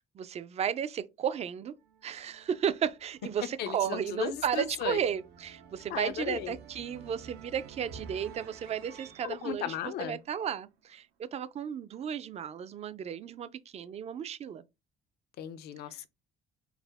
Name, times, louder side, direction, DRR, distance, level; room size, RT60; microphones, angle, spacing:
voice 1, 0.2-1.7 2.0-14.6, right 8 dB, 40° right, 0.4 m, -34 dB
sound 1, 1.8-10.8, right 7 dB, 75° right, 0.7 m, -52 dB
voice 2, 3.6-5.0 5.9-6.6 9.2-10.2 15.4-16.1, left 10 dB, 70° left, 0.6 m, -36 dB
4.7 x 2.0 x 3.4 m
cardioid pair, 110°, 17 cm